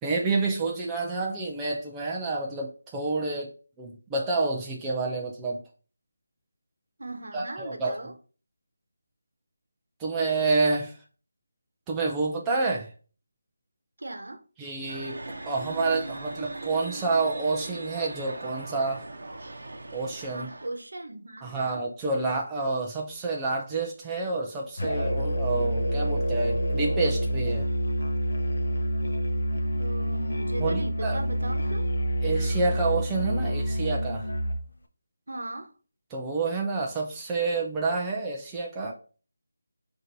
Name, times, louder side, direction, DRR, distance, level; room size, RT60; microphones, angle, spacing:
voice 1, 0.0-3.5 3.8-5.6 7.3-7.9 10.0-11.0 11.9-12.9 14.6-19.0 19.9-20.5 21.4-27.7 30.6-31.2 32.2-34.3 36.1-38.9, right 3 dB, 5° right, 0.3 m, -28 dB
voice 2, 7.0-8.1 14.0-14.4 20.3-21.8 29.7-31.9 35.3-35.7, right 2 dB, 85° right, 0.8 m, -38 dB
sound 1, 14.9-20.7, right 2 dB, 55° right, 0.7 m, -39 dB
Musical instrument, 24.8-34.7, right 1 dB, 60° left, 0.7 m, -27 dB
5.9 x 2.6 x 2.6 m
figure-of-eight pair, 180°, 0 cm